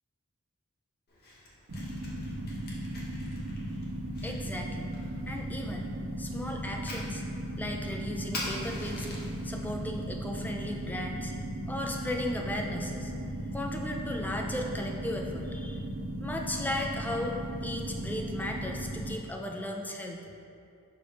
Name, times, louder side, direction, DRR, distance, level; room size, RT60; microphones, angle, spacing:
Fire, 1.1-9.5, left 1 dB, 45° left, 1.2 m, -45 dB
sound 1, 1.7-19.1, right 1 dB, 55° right, 0.6 m, -36 dB
voice 1, 4.2-4.9 5.3-5.9 6.2-7.2 7.6-9.2 9.4-11.4 11.7-13.1 13.5-15.8 16.2-17.4 17.6-20.3, left 1 dB, 10° left, 1 dB, 0.4 m, -36 dB
6.7 x 3.5 x 5.1 m, 2.8 s
head